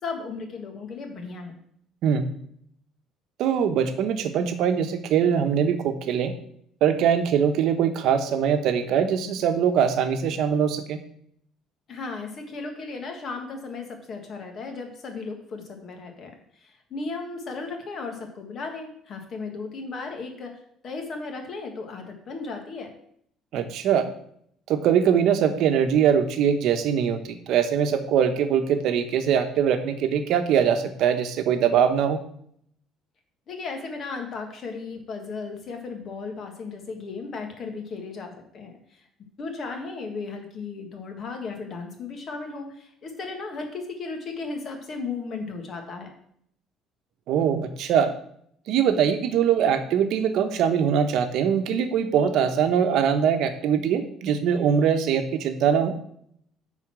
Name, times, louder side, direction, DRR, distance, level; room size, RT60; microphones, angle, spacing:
voice 1, 0.0-1.5 11.9-22.9 33.5-39.1 39.4-46.1, left 4 dB, 40° left, 4 dB, 1.7 m, -35 dB
voice 2, 3.4-6.3 6.8-11.0 23.5-24.1 24.7-32.2 47.3-48.1 48.7-56.0, right 8 dB, 60° right, 8 dB, 1.0 m, -22 dB
8.8 x 4.2 x 6.1 m, 0.68 s
cardioid pair, 150°, 0 cm